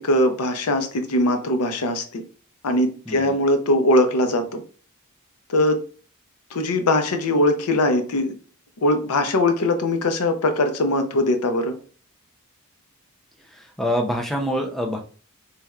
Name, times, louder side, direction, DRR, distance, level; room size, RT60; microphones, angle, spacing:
voice 1, 0.0-2.2 2.6-4.6 5.5-5.8 6.5-8.3 8.8-11.8, left 1 dB, 80° left, 7 dB, 0.6 m, -21 dB
voice 2, 3.1-3.4 13.4-15.0, equal, ahead, 2 dB, 0.5 m, -26 dB
4.2 x 3.3 x 2.4 m, 0.40 s
head